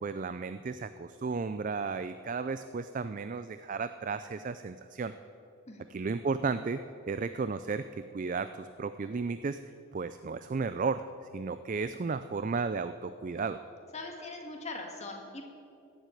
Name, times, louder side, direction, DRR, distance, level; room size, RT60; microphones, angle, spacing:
voice 1, 0.0-5.1 5.9-9.6 9.9-11.1 11.3-13.6, right 4 dB, 35° right, 11 dB, 0.4 m, -34 dB
voice 2, 13.9-15.4, left 2 dB, 30° left, 2 dB, 1.8 m, -41 dB
15.5 x 7.9 x 9.1 m, 2.6 s
head